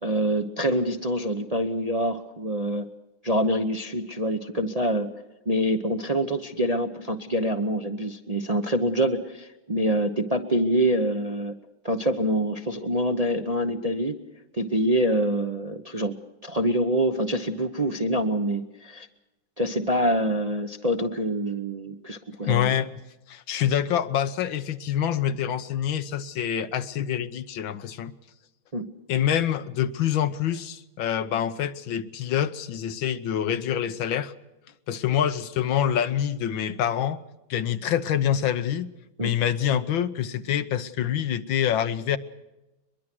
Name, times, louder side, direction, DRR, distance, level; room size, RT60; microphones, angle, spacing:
voice 1, 0.0-2.9 3.2-5.1 5.5-11.6 11.8-14.2 14.5-16.1 16.4-19.1 19.6-22.7 28.7-28.9 39.2-39.3, right 1 dB, 30° right, 5 dB, 0.7 m, -25 dB
voice 2, 22.4-22.9 23.3-28.1 29.1-34.3 34.9-37.2 37.5-38.9 39.2-42.2, left 9 dB, 75° left, 11 dB, 1.7 m, -26 dB
22.5 x 22.5 x 6.2 m, 1.0 s
omnidirectional pair, 2.2 m